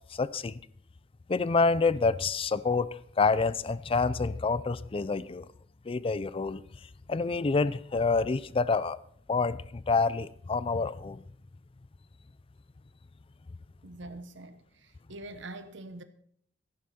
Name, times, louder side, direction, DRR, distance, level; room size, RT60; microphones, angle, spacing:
voice 1, 0.1-0.6 1.3-2.9 3.2-5.5 5.9-6.6 7.1-9.0 9.3-11.2, left 4 dB, 30° left, 0.4 m, -27 dB
voice 2, 13.8-16.0, right 2 dB, 70° right, 1.0 m, -44 dB
14.0 x 11.5 x 4.3 m
head